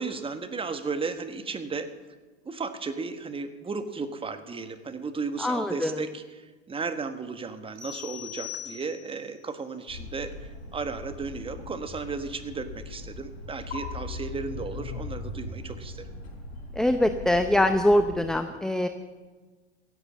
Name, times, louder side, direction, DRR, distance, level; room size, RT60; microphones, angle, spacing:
voice 1, 0.0-1.9 2.4-16.1, right 4 dB, 15° right, 9 dB, 1.4 m, -34 dB
voice 2, 5.4-5.9 16.7-18.9, left 1 dB, ahead, 8 dB, 0.7 m, -23 dB
sound 1, 7.7-9.3, left 12 dB, 50° right, 4.9 m, -40 dB
sound 2, 9.9-18.3, left 3 dB, 75° left, 5.0 m, -39 dB
16.0 x 11.0 x 7.4 m, 1.3 s
hypercardioid pair, 105°, 32 cm